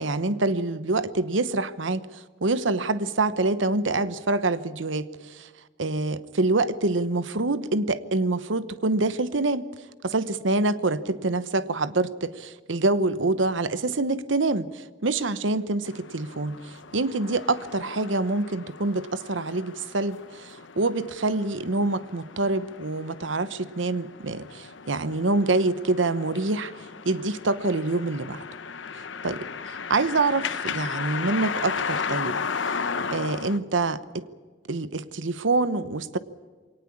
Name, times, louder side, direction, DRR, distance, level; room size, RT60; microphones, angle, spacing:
voice 1, 0.0-5.5 5.8-9.7 10.0-26.7 27.0-28.4 29.2-32.4 32.6-32.7 33.1-34.2 34.7-36.2, right 2 dB, 90° right, 15 dB, 1.0 m, -26 dB
sound 1, 15.9-33.6, left 5 dB, 85° left, 1.0 m, -35 dB
23.5 x 18.5 x 8.5 m, 1.5 s
head